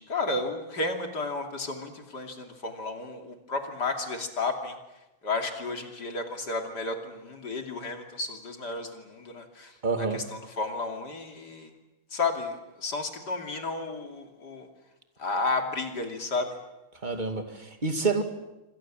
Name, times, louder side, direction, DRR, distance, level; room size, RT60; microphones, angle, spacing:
voice 1, 0.0-4.7 5.2-9.7 10.0-11.7 12.1-14.7 15.2-16.5, left 3 dB, 55° left, 3.3 m, -32 dB
voice 2, 9.8-10.2 17.0-18.2, right 4 dB, 20° right, 2.4 m, -28 dB
27.5 x 25.5 x 7.5 m
omnidirectional pair, 2.2 m